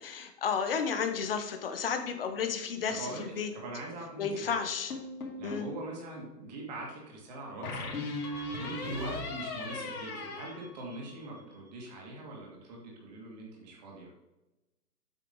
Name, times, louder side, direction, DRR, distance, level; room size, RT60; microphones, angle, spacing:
voice 1, 0.0-3.5 4.2-4.9 5.4-5.7, left 6 dB, 35° left, 6 dB, 0.9 m, -32 dB
voice 2, 3.0-4.6 5.4-8.0 8.6-14.1, right 2 dB, 25° right, -2 dB, 2.0 m, -42 dB
sound 1, 4.9-5.8 7.6-11.4, left 2 dB, 60° left, 2.5 m, -38 dB
8.3 x 5.7 x 3.8 m, 1.0 s
hypercardioid pair, 165°, 48 cm